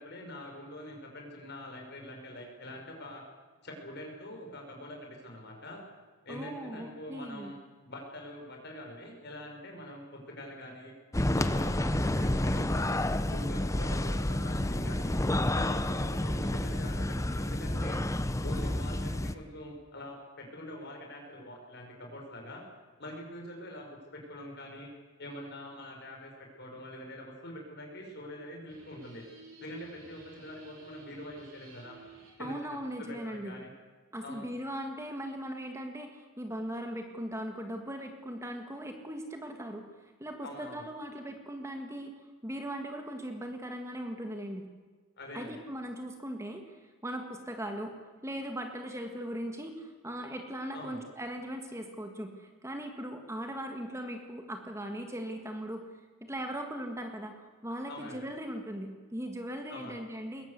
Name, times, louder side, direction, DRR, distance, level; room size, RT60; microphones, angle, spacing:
voice 1, 0.0-3.2 3.6-5.8 6.2-7.6 7.8-10.9 11.3-15.1 15.5-18.0 18.4-22.6 23.0-24.9 25.2-29.2 29.6-32.0 32.4-33.7 34.2-34.5 40.4-40.9 45.2-45.6 50.7-51.0 57.9-58.3 59.7-60.0, left 1 dB, 50° left, 1 dB, 5.6 m, -44 dB
voice 2, 6.3-7.5 32.4-33.5 34.1-42.1 42.4-44.6 45.3-55.9 56.2-60.5, equal, 15° right, 4 dB, 1.7 m, -39 dB
sound 1, 11.1-19.3, left 1 dB, 15° left, 0.7 m, -30 dB
sound 2, 28.7-32.5, right 2 dB, 65° right, 5.6 m, -53 dB
21.5 x 19.0 x 8.3 m, 1.4 s
head